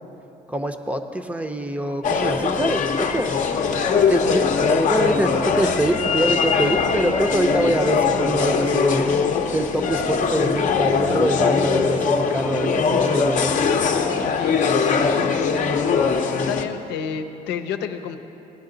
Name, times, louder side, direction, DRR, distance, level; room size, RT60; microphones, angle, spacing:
voice 1, 0.5-3.3 3.9-9.2 9.5-13.5, right 1 dB, 10° right, 7 dB, 0.7 m, -24 dB
sound 1, 2.0-16.6, left 5 dB, 50° left, 0.7 m, -21 dB
voice 2, 14.2-15.8 16.3-18.2, left 7 dB, 85° left, 6 dB, 0.7 m, -31 dB
16.0 x 10.5 x 3.9 m, 3.0 s
cardioid pair, 110°, 17 cm